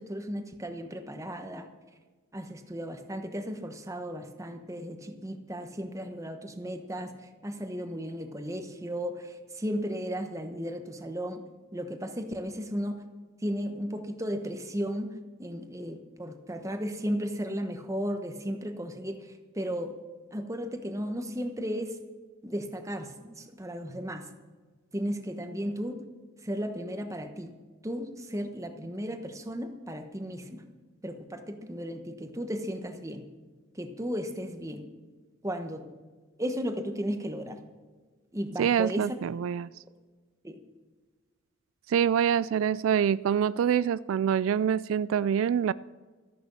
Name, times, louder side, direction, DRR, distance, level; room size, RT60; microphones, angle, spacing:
voice 1, 0.0-1.7 2.3-7.1 7.4-11.4 11.7-13.0 13.4-15.1 15.4-19.3 19.6-19.9 20.3-22.0 22.4-24.2 24.9-26.0 26.4-27.5 27.8-30.6 31.0-33.2 33.7-34.9 35.4-35.8 36.4-37.6 38.3-39.2 40.4-40.6, equal, 15° right, 6 dB, 1.2 m, -35 dB
voice 2, 38.6-39.7 41.9-45.7, right 8 dB, 80° right, 18 dB, 0.3 m, -25 dB
13.5 x 10.5 x 6.3 m, 1.3 s
head